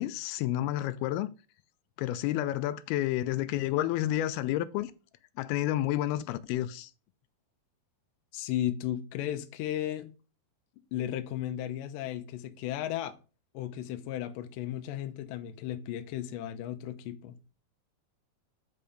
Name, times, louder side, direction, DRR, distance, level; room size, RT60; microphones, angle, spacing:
voice 1, 0.0-1.3 2.0-4.9 5.4-6.9, left 13 dB, 90° left, 2.5 m, -30 dB
voice 2, 8.3-10.1 10.9-13.2 13.5-17.4, left 12 dB, 75° left, 2.1 m, -35 dB
6.9 x 5.5 x 5.0 m
omnidirectional pair, 4.4 m